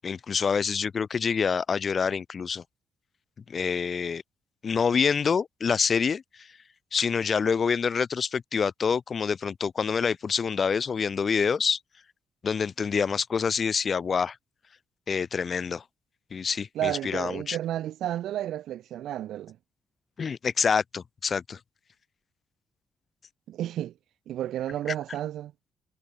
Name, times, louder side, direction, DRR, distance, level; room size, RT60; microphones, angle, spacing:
voice 1, 0.0-2.6 3.5-4.2 4.6-6.5 6.9-11.8 12.4-14.4 15.1-15.8 16.3-17.6 20.2-21.6, left 6 dB, 35° left, 1.1 m, -26 dB
voice 2, 16.7-19.6 23.5-23.9 24.3-25.5, right 12 dB, 80° right, 1.5 m, -32 dB
cardioid pair, 140°, 0 cm